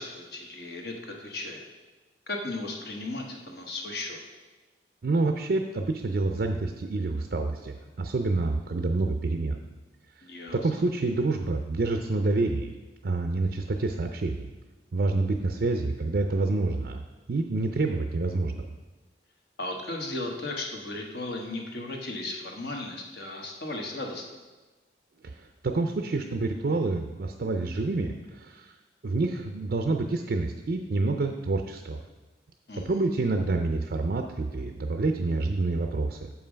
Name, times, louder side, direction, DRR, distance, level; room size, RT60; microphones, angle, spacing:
voice 1, 0.0-1.6 2.3-4.2 10.2-10.6 19.6-24.2 32.7-33.0, left 2 dB, 60° left, 2 dB, 1.1 m, -36 dB
voice 2, 5.0-9.6 10.2-10.3 10.5-12.7 13.0-14.5 14.9-17.0 17.3-18.7 25.4-28.7 29.0-32.0 32.8-36.3, right 3 dB, 55° right, 5 dB, 0.4 m, -28 dB
7.3 x 5.5 x 5.1 m, 1.2 s
head